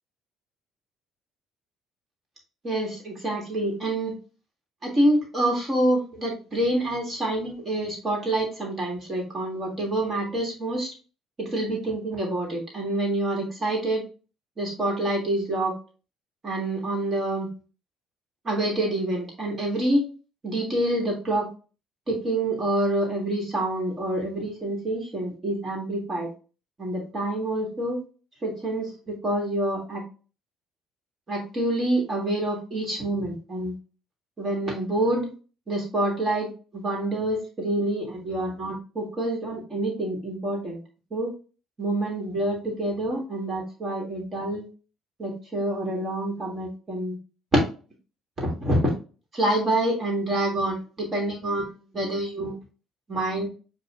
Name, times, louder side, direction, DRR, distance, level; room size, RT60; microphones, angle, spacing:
voice 1, 2.6-4.1 4.8-10.9 11.4-14.0 14.6-15.7 16.4-17.5 18.4-20.0 20.4-21.5 22.1-26.3 26.8-28.0 28.4-30.0 31.3-33.7 34.4-35.3 35.7-40.8 41.1-41.3 41.8-44.6 45.2-47.2 48.4-48.9 49.3-51.7 51.9-52.5 53.1-53.5, right 1 dB, 30° right, -1 dB, 1.6 m, -27 dB
7.2 x 2.4 x 2.4 m, 0.35 s
cardioid pair, 120°, 0 cm